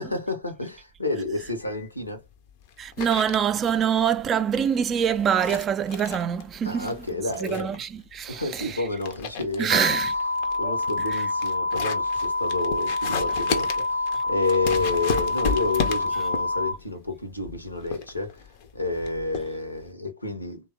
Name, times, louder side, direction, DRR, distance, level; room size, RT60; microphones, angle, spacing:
voice 1, 0.0-2.2 6.6-7.8 8.3-10.1 10.5-18.4 18.7-20.7, left 3 dB, 85° left, 0.8 m, -30 dB
sound 1, 1.3-19.9, left 6 dB, 50° left, 0.5 m, -35 dB
voice 2, 2.8-6.9 7.4-8.8 9.6-10.1 10.6-10.7 11.1-11.2, right 8 dB, 25° right, 0.4 m, -25 dB
sound 2, 9.7-16.7, left 2 dB, 90° right, 0.4 m, -27 dB
3.3 x 2.3 x 3.2 m
figure-of-eight pair, 90°, 0 cm